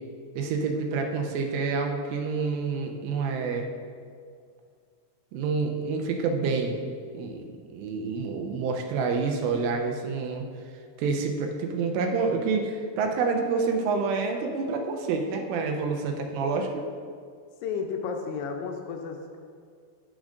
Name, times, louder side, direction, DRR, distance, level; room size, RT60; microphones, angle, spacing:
voice 1, 0.4-3.7 5.3-6.8 7.1-7.4 7.7-10.4 11.0-16.8, right 4 dB, 90° right, 3 dB, 3.2 m, -28 dB
voice 2, 17.6-19.4, left 5 dB, 80° left, 3 dB, 2.6 m, -32 dB
13.5 x 6.2 x 2.6 m, 2.1 s
omnidirectional pair, 5.6 m